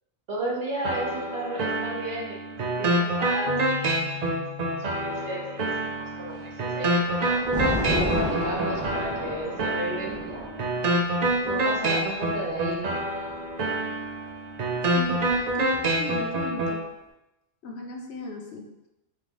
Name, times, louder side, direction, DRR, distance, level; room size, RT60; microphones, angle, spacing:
voice 1, 0.3-5.6 6.0-7.3 7.9-10.6 11.4-13.0, right 1 dB, 75° right, -3 dB, 1.4 m, -34 dB
sound 1, 0.8-16.8, right 1 dB, 55° right, 0.5 m, -27 dB
sound 2, 3.5-7.1, left 11 dB, 55° left, 0.5 m, -41 dB
Thunder, 6.3-13.5 14.5-16.3, left 1 dB, 5° right, 1.1 m, -34 dB
voice 2, 14.9-16.8 17.6-18.9, left 2 dB, 75° left, 2 dB, 1.0 m, -36 dB
3.4 x 3.2 x 3.7 m, 0.93 s
omnidirectional pair, 1.1 m